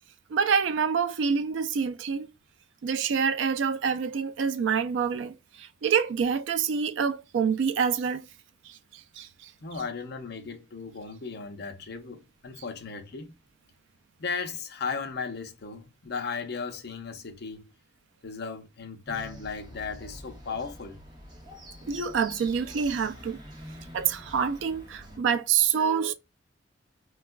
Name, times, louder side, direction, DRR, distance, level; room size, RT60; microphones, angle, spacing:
voice 1, 0.3-2.3 2.8-5.3 5.8-8.2 9.2-9.3 21.9-23.4 23.9-26.1, right 6 dB, 75° right, 0.4 m, -26 dB
voice 2, 9.6-13.3 14.2-17.7 18.2-21.0, left 5 dB, 60° left, 0.6 m, -36 dB
sound 1, 19.1-25.2, equal, 25° right, 0.7 m, -46 dB
4.3 x 2.3 x 2.2 m
head